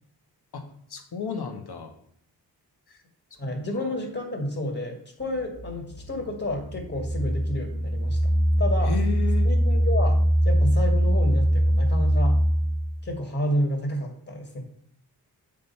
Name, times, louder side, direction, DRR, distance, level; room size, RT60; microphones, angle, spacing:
voice 1, 0.9-1.9 2.9-3.0 3.8-3.9 8.8-9.5, left 6 dB, 60° left, 5 dB, 1.6 m, -32 dB
voice 2, 3.4-8.3 8.6-8.9 9.4-12.4 13.0-14.6, left 1 dB, 35° left, 1 dB, 2.2 m, -30 dB
sound 1, 5.2-13.0, equal, 60° right, 2.1 m, -23 dB
7.5 x 5.2 x 5.5 m, 0.68 s
cardioid pair, 55°, 43 cm